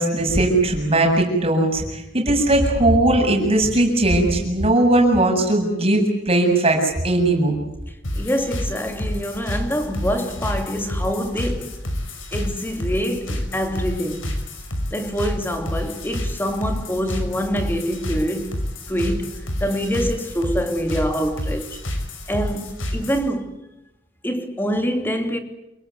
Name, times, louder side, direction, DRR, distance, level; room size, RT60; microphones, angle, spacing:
voice 1, 0.0-7.6, right 1 dB, 30° right, 7.8 m, -18 dB
sound 1, 8.0-23.3, left 1 dB, 80° left, 5.7 m, -29 dB
voice 2, 8.2-11.7 12.3-14.4 14.9-18.6 18.9-19.3 19.6-21.8 22.3-23.5 24.2-25.4, equal, 10° left, 2.9 m, -25 dB
29.0 x 19.0 x 9.6 m
head